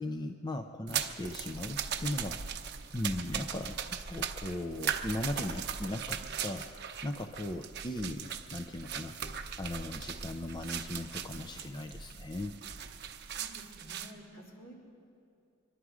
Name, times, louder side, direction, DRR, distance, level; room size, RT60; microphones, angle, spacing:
voice 1, 0.0-2.4 2.9-6.7 7.0-9.2 9.6-12.6, left 1 dB, 20° left, 5 dB, 0.5 m, -38 dB
sound 1, 0.9-14.1, right 7 dB, 55° right, 0.8 m, -39 dB
voice 2, 13.0-14.7, equal, 65° left, -4 dB, 3.8 m, -52 dB
24.0 x 11.5 x 4.9 m, 2.6 s
head